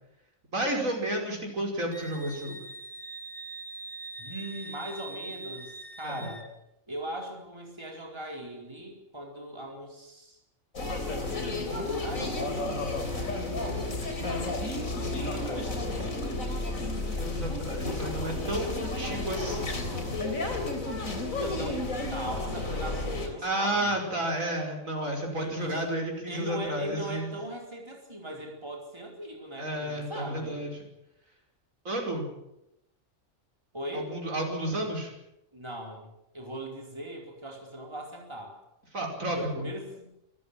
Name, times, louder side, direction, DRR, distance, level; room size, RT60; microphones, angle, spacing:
voice 1, 0.5-2.6 6.0-6.2 17.2-19.8 23.4-27.3 29.6-30.9 31.8-32.3 33.9-35.1 38.9-39.7, right 1 dB, 80° right, 1 dB, 5.9 m, -31 dB
Wind instrument woodwind instrument, 1.9-6.5, right 3 dB, 45° left, 2.4 m, -42 dB
voice 2, 4.2-6.5 6.9-10.4 11.1-12.6 15.0-16.2 21.4-24.0 25.4-25.8 26.3-30.6 33.7-34.1 35.5-38.5 39.3-40.1, right 1 dB, 20° right, 1 dB, 4.6 m, -39 dB
sound 1, 10.8-23.3, left 2 dB, 85° left, 4.1 m, -32 dB
26.5 x 14.5 x 9.0 m, 0.87 s
omnidirectional pair, 1.4 m